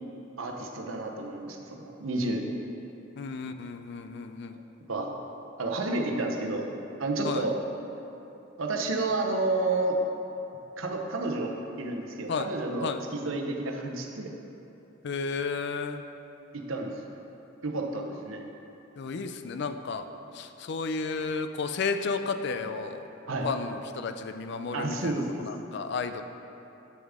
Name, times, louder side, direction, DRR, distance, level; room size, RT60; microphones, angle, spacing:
voice 1, 0.4-2.5 4.9-5.1 5.6-6.7 7.0-7.6 8.6-10.0 10.8-14.3 16.5-16.9 17.6-18.4 23.3-23.5 24.7-25.4, right 2 dB, 80° right, 2 dB, 0.8 m, -30 dB
voice 2, 3.2-4.6 7.2-7.4 12.3-12.5 12.8-13.0 15.0-16.0 19.0-20.1 20.3-23.0 23.4-26.2, left 4 dB, 55° left, 9 dB, 0.4 m, -32 dB
8.5 x 6.9 x 3.6 m, 3.0 s
head